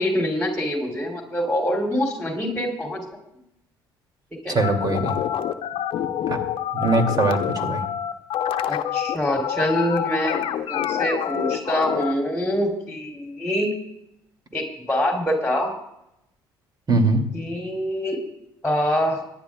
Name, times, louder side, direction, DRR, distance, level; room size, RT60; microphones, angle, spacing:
voice 1, 0.0-3.0 4.4-4.6 8.7-13.7 14.5-15.7 17.3-18.2 18.6-19.2, equal, 5° left, 0 dB, 3.2 m, -25 dB
voice 2, 4.5-5.2 6.3-6.4 6.7-7.8 16.9-17.2, right 3 dB, 40° right, 4 dB, 2.6 m, -21 dB
sound 1, 4.6-12.1, left 10 dB, 60° left, 0.8 m, -26 dB
25.0 x 10.5 x 2.4 m, 0.81 s
hypercardioid pair, 55°, 11 cm